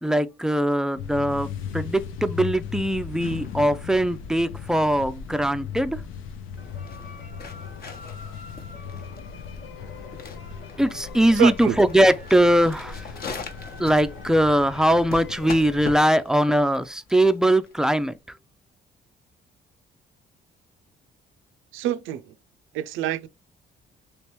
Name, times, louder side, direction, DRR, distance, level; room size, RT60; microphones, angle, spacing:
voice 1, 0.0-1.5 1.7-6.0 10.8-13.0 13.8-18.1, right 1 dB, 5° right, 0.3 m, -21 dB
sound 1, 0.9-16.0, left 7 dB, 85° left, 0.6 m, -38 dB
sound 2, 6.5-18.2, left 4 dB, 50° left, 0.9 m, -41 dB
sound 3, 6.6-16.2, left 4 dB, 70° left, 1.3 m, -45 dB
voice 2, 11.4-11.8 21.7-22.3 22.7-23.3, right 12 dB, 85° right, 0.4 m, -26 dB
3.2 x 3.0 x 2.9 m
cardioid pair, 90°, 20 cm